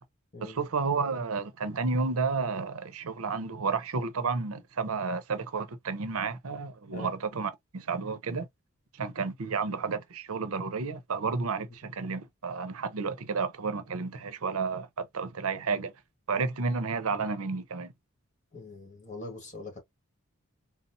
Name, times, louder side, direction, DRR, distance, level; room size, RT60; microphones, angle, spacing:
voice 1, 0.4-8.5 9.0-15.9 16.3-17.9, right 4 dB, 85° right, 0.6 m, -31 dB
voice 2, 18.5-19.8, left 2 dB, 35° left, 1.3 m, -43 dB
4.0 x 2.0 x 2.5 m
head